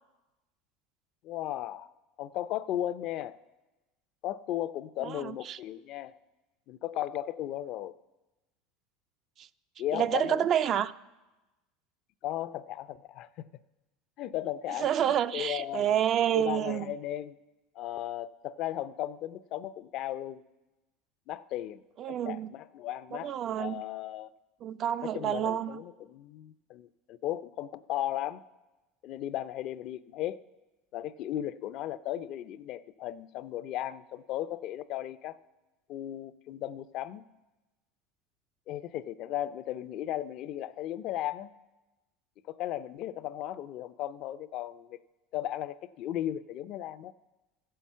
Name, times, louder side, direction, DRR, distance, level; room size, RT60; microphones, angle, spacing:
voice 1, 1.2-1.9 2.2-3.4 4.2-6.1 6.7-7.9 9.8-10.5 12.2-13.5 14.2-15.9 16.4-17.4 17.8-20.4 21.3-21.8 22.1-23.3 23.6-24.3 25.0-28.4 29.0-30.4 30.9-35.4 35.9-37.3 38.7-41.5 42.5-45.0 45.3-47.1, left 12 dB, 55° left, 0.4 m, -36 dB
voice 2, 5.0-5.6 9.4-9.5 9.9-10.9 14.8-16.9 22.0-22.5 23.1-23.8 24.6-25.8, right 10 dB, 40° right, 0.4 m, -29 dB
14.5 x 5.7 x 7.3 m
supercardioid pair, 110°, 0 cm